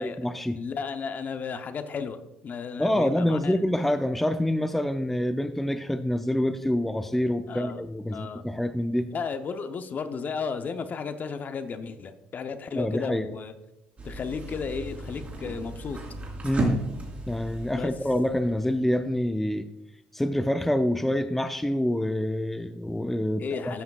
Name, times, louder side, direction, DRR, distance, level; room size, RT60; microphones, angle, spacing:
voice 1, 0.0-0.6 2.8-9.1 12.7-13.3 16.4-16.8 17.3-19.7 20.1-23.8, left 1 dB, 5° left, 9 dB, 0.4 m, -26 dB
voice 2, 0.5-3.5 7.5-7.8 8.1-8.4 9.1-13.5 14.0-16.0 17.7-17.9 23.4-23.8, left 5 dB, 45° left, 9 dB, 0.7 m, -34 dB
sound 1, 14.0-19.1, right 2 dB, 35° right, 3.0 m, -34 dB
12.5 x 5.8 x 2.3 m, 0.93 s
supercardioid pair, 75°, 4 cm